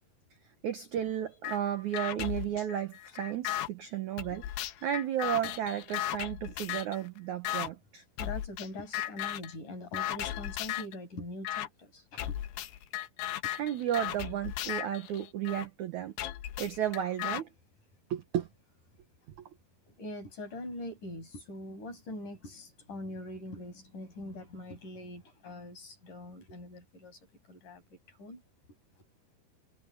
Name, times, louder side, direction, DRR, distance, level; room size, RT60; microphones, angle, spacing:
voice 1, 0.6-8.0 13.5-16.1 16.6-17.5 18.1-18.5, right 10 dB, 70° right, 1.9 m, -33 dB
sound 1, 1.4-1.6 1.9-3.7 4.2-7.0 7.5-7.7 8.2-8.7 8.9-9.5 9.9-11.0 11.5-11.7 12.2-15.7 16.2-17.4, left 12 dB, 80° left, 3.4 m, -36 dB
voice 2, 8.2-12.4 20.0-27.2 27.5-27.8 28.1-28.4, left 1 dB, 50° left, 8.6 m, -43 dB
omnidirectional pair, 4.8 m